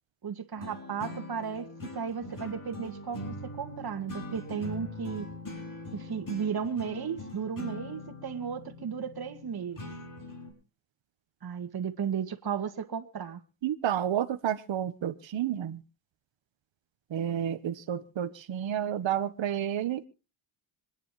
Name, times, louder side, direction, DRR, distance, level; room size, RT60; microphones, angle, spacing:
voice 1, 0.2-5.3 5.9-9.9 11.4-13.4, right 7 dB, 50° right, 2.1 m, -35 dB
sound 1, 0.5-10.5, left 2 dB, 40° left, 6.4 m, -42 dB
voice 2, 13.6-15.8 17.1-20.1, right 10 dB, 65° right, 1.4 m, -30 dB
26.0 x 9.9 x 3.2 m
cardioid pair, 80°, 50 cm